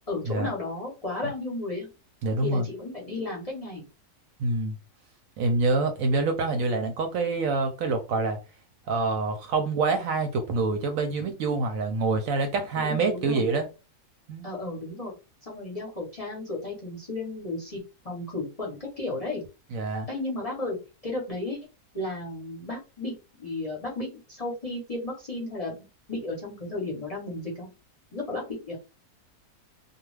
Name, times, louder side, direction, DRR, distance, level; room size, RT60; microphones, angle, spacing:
voice 1, 0.1-1.9 2.4-3.9 12.8-13.5 14.4-15.1 15.5-19.4 20.1-20.8 21.0-21.6 21.9-23.1 23.4-27.7 28.1-28.7, left 2 dB, 35° left, 0.7 m, -34 dB
voice 2, 2.2-2.7 4.4-4.8 5.4-8.4 8.9-13.7 14.3-14.5 19.7-20.1, right 3 dB, 70° right, 0.9 m, -26 dB
2.4 x 2.3 x 3.1 m
omnidirectional pair, 1.6 m